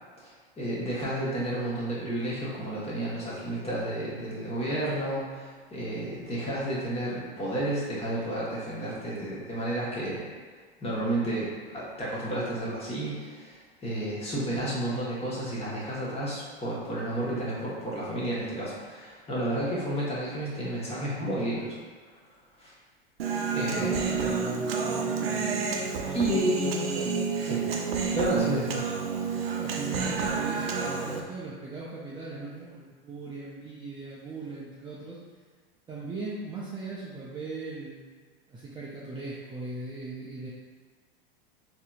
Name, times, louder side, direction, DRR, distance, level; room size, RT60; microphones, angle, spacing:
voice 1, 0.2-10.3 10.8-21.8 22.6-22.7 23.5-24.1 26.1-26.6 27.4-27.6 28.1-28.9, right 1 dB, 20° left, -7 dB, 1.2 m, -31 dB
Human voice, 23.2-31.2, right 5 dB, 85° right, 0.5 m, -29 dB
voice 2, 23.5-27.1 27.5-27.7 29.6-35.2 35.9-38.0 38.5-40.5, right 3 dB, 15° right, -7 dB, 0.5 m, -39 dB
4.0 x 2.8 x 2.4 m, 1.5 s
hypercardioid pair, 105°, 29 cm